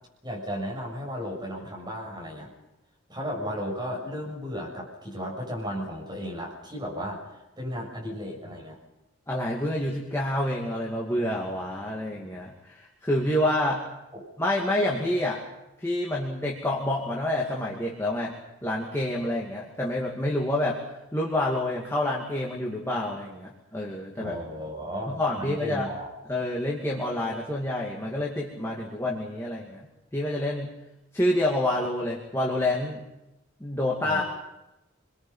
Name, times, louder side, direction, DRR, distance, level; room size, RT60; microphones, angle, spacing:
voice 1, 0.2-2.5 3.1-8.8 14.1-14.2 24.2-26.1 34.0-34.2, equal, 20° right, -3 dB, 7.2 m, -34 dB
voice 2, 9.3-13.8 14.4-15.4 15.8-18.3 18.6-20.8 21.1-24.4 25.1-25.9 26.3-29.9 30.1-30.7 31.1-33.0 33.6-34.2, left 1 dB, 15° left, -3 dB, 2.4 m, -28 dB
28.5 x 22.5 x 5.7 m, 0.97 s
head